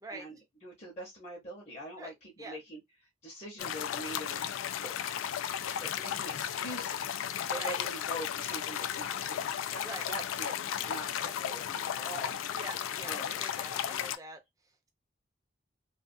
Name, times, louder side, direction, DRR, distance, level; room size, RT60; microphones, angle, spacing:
voice 1, 0.1-4.4 4.8-4.9 5.4-7.2 7.5-12.3 13.0-13.4 13.7-14.0, equal, 30° left, 0.7 m, -44 dB
sound 1, 3.6-14.2, left 9 dB, 90° left, 0.3 m, -35 dB
voice 2, 9.8-10.1 12.5-14.4, right 2 dB, 15° right, 0.5 m, -45 dB
2.3 x 2.3 x 2.5 m
head